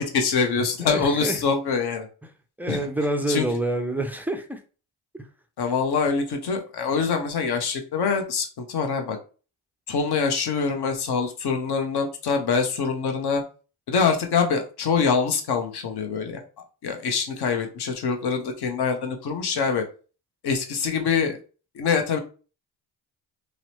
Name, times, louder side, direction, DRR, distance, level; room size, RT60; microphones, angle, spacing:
voice 1, 0.0-2.1 2.7-2.9 3.3-3.5 5.6-9.2 9.9-13.4 13.9-16.4 16.8-19.8 20.4-21.4 21.7-22.2, left 5 dB, 50° left, 5 dB, 0.8 m, -24 dB
voice 2, 0.8-1.4 2.6-4.6, right 1 dB, 5° right, 5 dB, 0.3 m, -27 dB
2.8 x 2.0 x 2.8 m, 0.36 s
hypercardioid pair, 50°, 50 cm